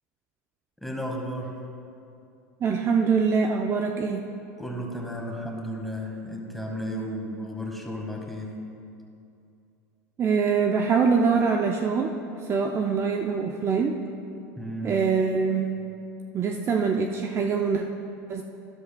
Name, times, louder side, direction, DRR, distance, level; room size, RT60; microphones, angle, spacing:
voice 1, 0.8-1.5 4.6-8.6 14.6-15.0, equal, ahead, 0 dB, 1.6 m, -33 dB
voice 2, 2.6-4.3 10.2-12.1 12.4-13.9 14.8-15.7 16.3-17.9 18.3-18.4, right 5 dB, 35° right, 2 dB, 0.5 m, -24 dB
12.5 x 11.0 x 2.3 m, 2.6 s
supercardioid pair, 110°, 8 cm